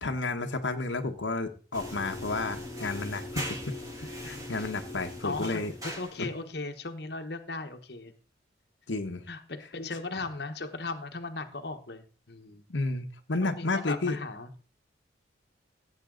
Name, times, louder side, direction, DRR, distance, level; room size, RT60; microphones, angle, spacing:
voice 1, 0.0-5.7 6.2-6.3 8.9-9.2 12.7-14.2, left 3 dB, 80° left, 4 dB, 1.2 m, -32 dB
sound 1, 1.7-6.4, left 1 dB, 20° right, 3.0 m, -40 dB
voice 2, 4.0-4.5 5.2-8.1 9.3-12.6 13.4-14.5, left 3 dB, 60° left, 5 dB, 1.2 m, -37 dB
15.5 x 8.3 x 3.9 m, 0.37 s
head